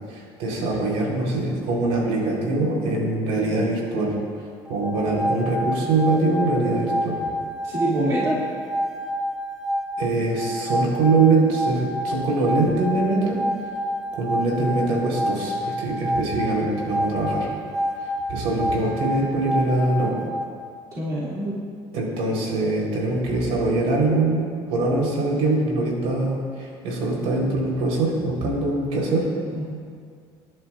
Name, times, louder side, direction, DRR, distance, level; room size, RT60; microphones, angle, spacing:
voice 1, 0.1-4.2 4.7-7.2 10.0-13.4 14.1-17.5 18.0-20.2 21.9-29.3, right 2 dB, 70° right, -3 dB, 3.8 m, -23 dB
voice 2, 3.3-3.7 7.6-8.4 20.9-21.5 29.5-29.7, right 1 dB, 30° right, -7 dB, 2.6 m, -26 dB
sound 1, 4.6-20.5, equal, 5° right, 1.2 m, -28 dB
26.5 x 11.0 x 2.5 m, 2.2 s
cardioid pair, 180°, 11 cm